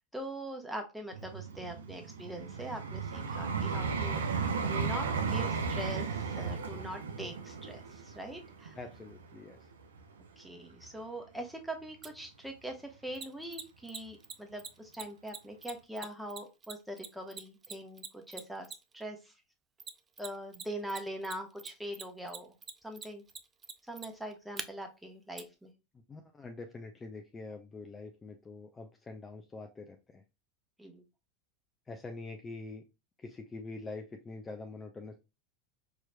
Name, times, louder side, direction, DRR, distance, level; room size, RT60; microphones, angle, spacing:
voice 1, 0.1-8.8 10.4-18.7 18.9-19.3 20.2-22.5 22.8-23.2 23.9-25.7 30.8-31.0, right 1 dB, 5° right, 3 dB, 1.1 m, -42 dB
Vehicle, 1.1-10.2 10.8-11.0, right 5 dB, 80° right, 0.5 m, -35 dB
voice 2, 8.8-9.6 26.1-30.2 31.9-32.8 33.2-35.1, left 3 dB, 20° left, 4 dB, 0.6 m, -45 dB
Mechanisms, 12.0-12.1 13.1-19.0 19.8-20.6 20.9-24.6 25.4-25.5, right 6 dB, 25° right, 0.4 m, -43 dB
4.7 x 3.0 x 2.2 m, 0.27 s
hypercardioid pair, 90°, 0 cm